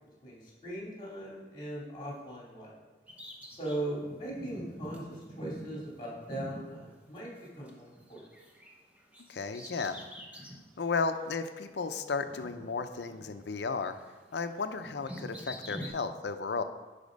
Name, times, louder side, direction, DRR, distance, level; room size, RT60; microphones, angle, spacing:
voice 1, 0.2-2.7 3.5-8.2, right 1 dB, 25° left, -5 dB, 2.8 m, -39 dB
Bird vocalization bird call bird song, 3.1-7.7 8.0-10.7 11.1-11.2 12.1-13.6 13.9-15.9, equal, 10° right, 0.8 m, -46 dB
voice 2, 9.3-10.0 10.8-14.0 14.3-16.6, left 4 dB, 80° left, 9 dB, 0.5 m, -34 dB
10.5 x 4.3 x 5.2 m, 1.3 s
head